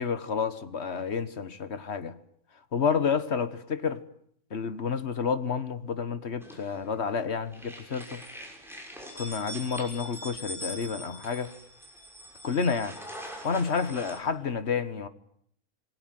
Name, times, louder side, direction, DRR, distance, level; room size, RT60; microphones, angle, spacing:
voice 1, 0.0-2.1 2.7-4.0 4.5-8.2 9.2-11.5 12.4-13.0 13.4-15.1, left 6 dB, 45° left, 1.7 m, -30 dB
sound 1, 6.4-7.2 7.5-14.2, equal, ahead, 6.2 m, -43 dB
27.5 x 20.5 x 9.4 m
omnidirectional pair, 1.6 m